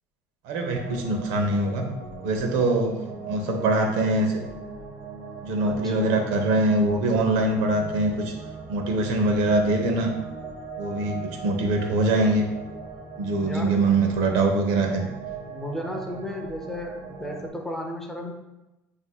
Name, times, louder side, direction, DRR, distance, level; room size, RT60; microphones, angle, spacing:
voice 1, 0.4-1.9 2.2-3.0 3.3-4.4 5.4-8.3 8.7-10.1 10.8-12.5 13.2-15.1, right 2 dB, 80° right, 3 dB, 0.8 m, -23 dB
sound 1, 0.7-17.5, right 4 dB, 60° right, 1.2 m, -39 dB
voice 2, 5.6-6.1 13.4-13.8 15.5-18.3, left 1 dB, 5° left, 1 dB, 0.5 m, -34 dB
7.8 x 2.7 x 2.2 m, 0.99 s
cardioid pair, 150°, 7 cm